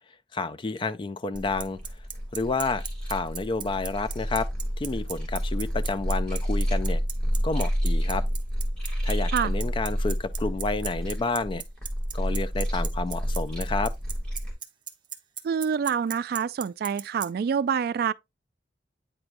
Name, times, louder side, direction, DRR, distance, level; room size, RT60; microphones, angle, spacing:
voice 1, 0.3-1.8 2.3-4.5 4.8-7.0 7.4-8.2 9.0-11.6 12.1-13.9, left 3 dB, 30° left, 0.3 m, -30 dB
sound 1, 1.3-14.5, equal, 5° left, 2.5 m, -29 dB
Bicycle, 1.4-17.3, right 8 dB, 30° right, 0.8 m, -36 dB
voice 2, 15.4-18.1, right 7 dB, 60° right, 0.3 m, -26 dB
8.7 x 4.6 x 2.5 m
head